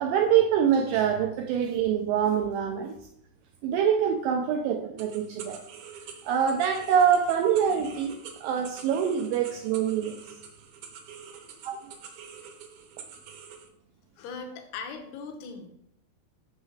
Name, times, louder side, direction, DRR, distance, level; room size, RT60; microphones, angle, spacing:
voice 1, 0.0-3.0 3.6-5.6 6.3-10.2 11.6-11.9, right 8 dB, 90° right, 2.0 m, -25 dB
sound 1, 5.0-13.7, right 6 dB, 75° right, 1.9 m, -46 dB
voice 2, 14.2-15.7, left 5 dB, 80° left, 2.9 m, -39 dB
7.0 x 6.2 x 3.2 m
omnidirectional pair, 4.6 m